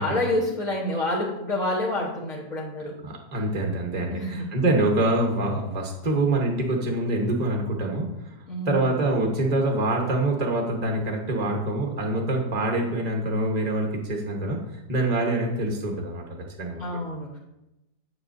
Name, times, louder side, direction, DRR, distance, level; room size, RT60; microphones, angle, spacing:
voice 1, 0.0-3.0 4.1-4.4 8.5-8.9 16.8-17.4, left 1 dB, 50° left, -5 dB, 1.5 m, -28 dB
voice 2, 3.0-8.3 8.6-14.6 14.9-16.2 16.6-16.9, right 2 dB, 30° right, 0 dB, 0.9 m, -25 dB
9.7 x 7.8 x 2.6 m, 0.91 s
omnidirectional pair, 2.0 m